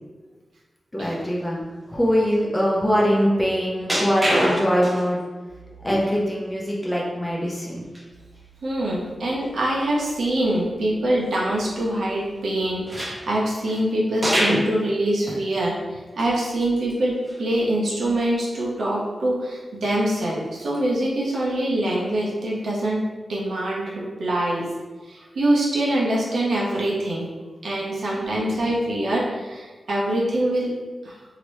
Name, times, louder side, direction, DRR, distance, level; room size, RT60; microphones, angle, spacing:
voice 1, 0.9-1.6 1.9-5.2 5.8-7.8 28.1-28.6, equal, 15° left, -4 dB, 0.7 m, -23 dB
sound 1, 3.9-5.2 5.7-5.8 7.9-8.0 8.4-8.5 8.9-9.0 12.9-13.8 14.2-14.8 15.3-15.4 15.9-16.0 17.2-17.4 17.8-18.1 20.3-20.5, equal, 20° right, 0.7 m, -25 dB
voice 2, 8.6-23.0 23.3-24.7 25.0-27.3 27.6-30.7 31.0-31.2, right 1 dB, 80° right, -5 dB, 0.9 m, -24 dB
2.9 x 2.9 x 3.2 m, 1.3 s
wide cardioid pair, 120°, 0 cm